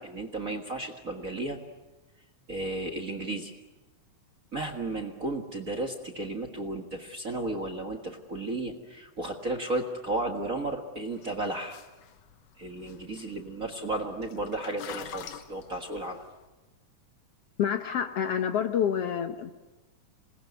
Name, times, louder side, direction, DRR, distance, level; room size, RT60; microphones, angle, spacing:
voice 1, 0.0-1.6 2.5-3.5 4.5-11.8 12.6-16.2, right 2 dB, 35° right, 5 dB, 1.4 m, -34 dB
sound 1, 11.1-16.5, left 10 dB, 85° left, 2.7 m, -47 dB
voice 2, 17.6-19.5, left 8 dB, 65° left, 6 dB, 1.7 m, -28 dB
27.5 x 20.5 x 9.4 m, 1.2 s
omnidirectional pair, 3.6 m